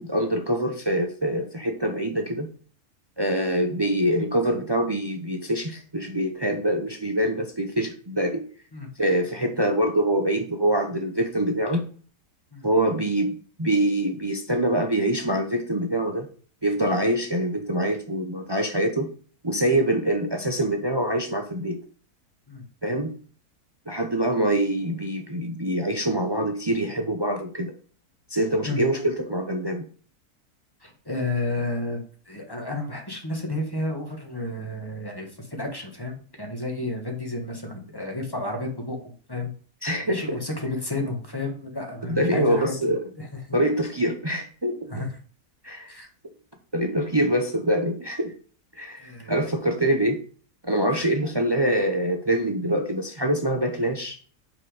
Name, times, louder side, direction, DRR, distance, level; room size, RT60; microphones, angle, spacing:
voice 1, 0.0-2.5 3.2-8.4 9.0-11.9 12.6-16.3 16.6-19.1 19.4-21.8 22.8-23.2 23.9-27.7 28.3-29.9 39.8-40.4 42.1-43.0 43.5-44.9 45.6-45.9 46.7-48.3 48.8-50.2 50.6-54.2, right 1 dB, 40° right, 4 dB, 0.3 m, -25 dB
voice 2, 30.8-32.0 32.3-39.5 40.0-42.7 43.2-43.6 44.9-45.1 45.9-46.1 49.0-49.3 50.9-51.0, left 2 dB, 15° left, 2 dB, 1.3 m, -31 dB
5.8 x 4.8 x 4.9 m, 0.43 s
omnidirectional pair, 1.6 m